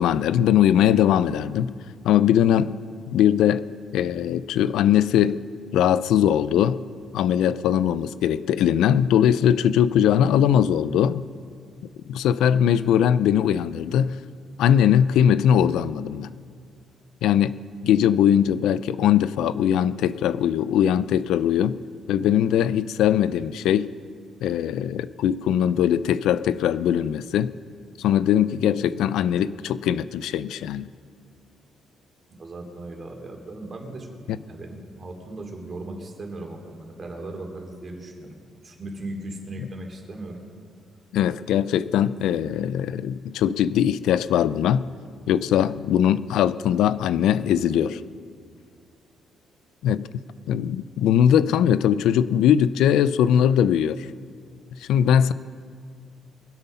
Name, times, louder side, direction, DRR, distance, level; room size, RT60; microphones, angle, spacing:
voice 1, 0.0-1.7 2.0-2.7 3.1-3.7 3.9-5.4 5.7-6.8 7.1-11.2 12.1-14.2 14.6-16.3 17.2-21.8 22.1-23.9 24.4-27.5 28.0-30.9 34.3-34.4 41.1-44.9 45.3-48.0 49.8-50.1 50.5-54.1 54.8-55.3, left 9 dB, 85° left, 16 dB, 0.4 m, -20 dB
voice 2, 32.3-34.1 34.5-40.4, right 2 dB, 40° right, 1 dB, 3.1 m, -37 dB
23.5 x 8.2 x 5.6 m, 2.1 s
cardioid pair, 90°, 0 cm